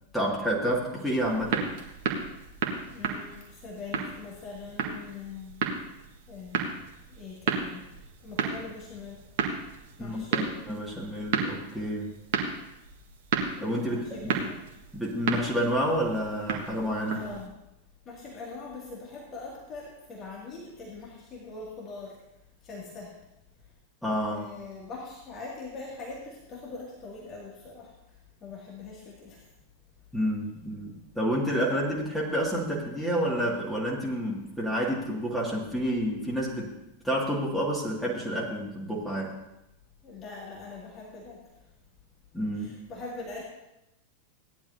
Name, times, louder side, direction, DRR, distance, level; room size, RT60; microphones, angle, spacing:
voice 1, 0.1-1.7 10.0-12.1 13.6-14.5 14.9-17.3 24.0-24.5 30.1-36.7 37.0-39.3 42.3-42.8, equal, 5° left, -5 dB, 2.2 m, -29 dB
sound 1, 1.0-17.5, right 6 dB, 55° right, 1.6 m, -33 dB
voice 2, 2.9-5.5 6.3-6.7 7.1-7.8 8.2-9.2 10.0-10.5 13.5-14.6 17.1-17.5 18.1-22.2 22.6-23.1 24.3-27.9 28.4-29.4 40.0-41.4 42.6-43.4, left 4 dB, 30° left, -3 dB, 2.3 m, -42 dB
17.0 x 10.5 x 2.8 m, 0.91 s
figure-of-eight pair, 90°, 0 cm